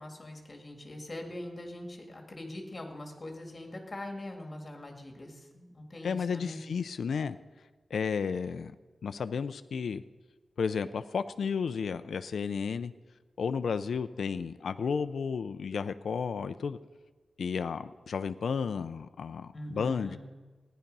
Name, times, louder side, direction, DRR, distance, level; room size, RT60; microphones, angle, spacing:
voice 1, 0.0-6.6 19.5-20.2, left 1 dB, 25° left, 3 dB, 2.2 m, -42 dB
voice 2, 6.0-7.4 7.9-8.7 9.0-10.0 10.6-12.9 13.4-16.8 17.4-20.2, left 6 dB, 90° left, 11 dB, 0.4 m, -32 dB
15.5 x 10.0 x 5.4 m, 1.3 s
wide cardioid pair, 145°, 0 cm